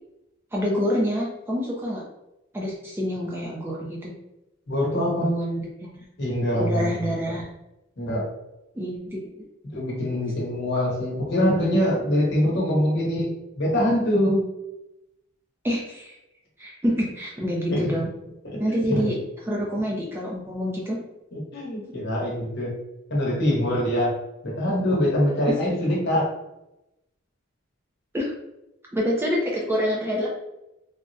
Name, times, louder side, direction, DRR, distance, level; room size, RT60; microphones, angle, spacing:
voice 1, 0.5-2.0 2.5-4.1 4.9-6.0 6.6-7.5 8.8-9.2 15.6-16.1 16.6-18.1 18.6-19.2 19.5-21.0 28.1-28.3 28.9-30.3, equal, 10° right, -4 dB, 0.4 m, -27 dB
voice 2, 4.7-5.3 6.2-7.0 8.0-8.2 9.7-13.3 13.6-14.4 17.7-17.9 18.4-19.0 21.3-22.7 23.1-24.1 24.4-26.3, equal, 50° left, -4 dB, 0.9 m, -24 dB
3.5 x 2.0 x 2.6 m, 0.92 s
head